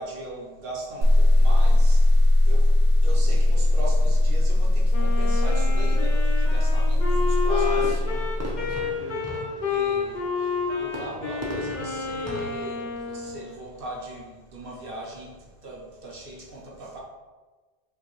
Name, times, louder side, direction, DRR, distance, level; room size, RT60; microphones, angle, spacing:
voice 1, 0.0-2.8 3.0-7.9 9.7-17.0, right 1 dB, 60° right, -3 dB, 0.9 m, -39 dB
sound 1, 1.0-8.8, left 1 dB, 90° right, 0.9 m, -19 dB
Wind instrument woodwind instrument, 4.9-13.4, left 5 dB, 50° left, 0.7 m, -30 dB
Fireworks, 7.3-13.4, equal, 20° right, 0.5 m, -40 dB
voice 2, 7.5-8.2 8.5-9.7, equal, 75° left, -9 dB, 1.8 m, -37 dB
5.0 x 2.2 x 3.0 m, 1.3 s
omnidirectional pair, 1.1 m